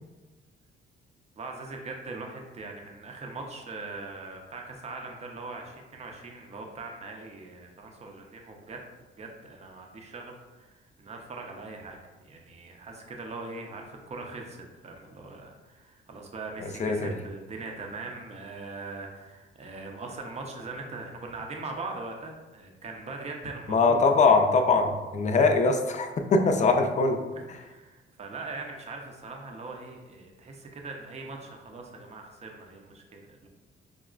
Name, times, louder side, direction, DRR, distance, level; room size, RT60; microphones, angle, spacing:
voice 1, 1.4-8.8 9.2-24.0 27.4-33.5, right 3 dB, 35° right, 1 dB, 0.6 m, -41 dB
voice 2, 16.6-17.1 23.7-27.2 27.5-27.6, left 4 dB, 35° left, 5 dB, 0.4 m, -22 dB
4.9 x 2.1 x 2.4 m, 1.2 s
cardioid pair, 90°, 20 cm